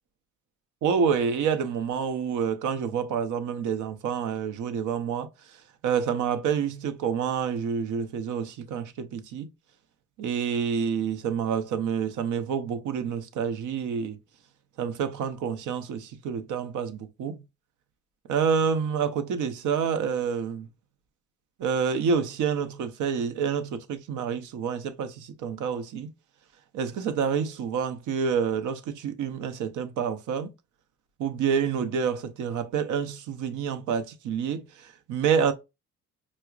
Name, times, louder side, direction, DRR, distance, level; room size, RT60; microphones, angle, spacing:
voice 1, 0.8-5.3 5.8-9.5 10.2-14.2 14.8-17.4 18.3-20.7 21.6-26.1 26.7-30.5 31.2-35.5, right 6 dB, 80° right, 0.7 m, -28 dB
5.7 x 2.1 x 2.4 m
cardioid pair, 90°, 30 cm